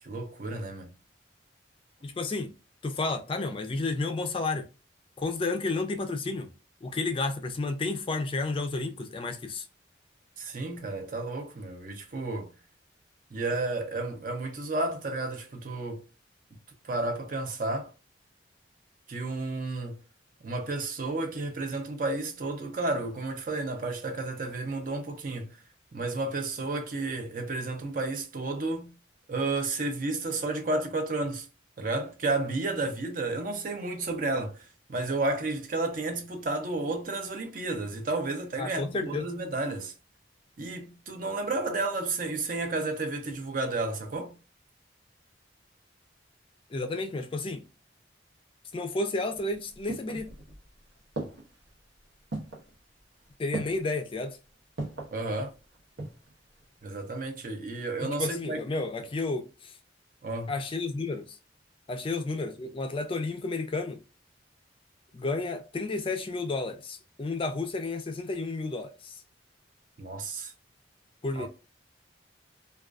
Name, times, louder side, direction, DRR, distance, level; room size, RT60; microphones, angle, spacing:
voice 1, 0.0-0.9 10.4-12.5 13.3-16.0 16.5-16.6 16.8-17.9 19.1-20.0 20.4-25.6 25.9-28.9 29.3-31.5 31.8-39.9 40.6-44.4 55.1-55.5 56.8-58.6 60.2-60.5 70.0-70.5 71.4-71.5, right 2 dB, 50° right, 0.5 m, -32 dB
voice 2, 2.0-2.5 2.8-4.7 5.2-6.5 6.8-9.6 38.6-39.2 46.7-47.6 48.7-50.3 53.4-54.4 58.2-59.7 60.5-61.4 61.9-64.0 65.1-69.2 71.2-71.5, left 3 dB, 30° left, 0.3 m, -31 dB
sound 1, 49.3-50.7 51.2-51.7 52.3-52.7 53.5-54.0 54.8-55.2 55.7-56.3 56.6-56.7, right 2 dB, 85° right, 0.8 m, -37 dB
2.4 x 2.3 x 2.3 m
head